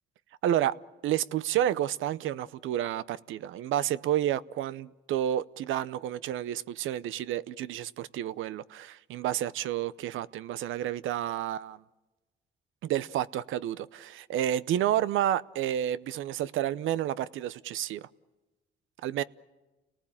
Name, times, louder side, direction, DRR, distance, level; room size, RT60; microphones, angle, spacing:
voice 1, 0.4-0.8 1.0-11.8 12.8-18.1 19.0-19.2, right 11 dB, 85° right, 0.7 m, -30 dB
29.5 x 19.0 x 8.7 m
cardioid pair, 90°, 20 cm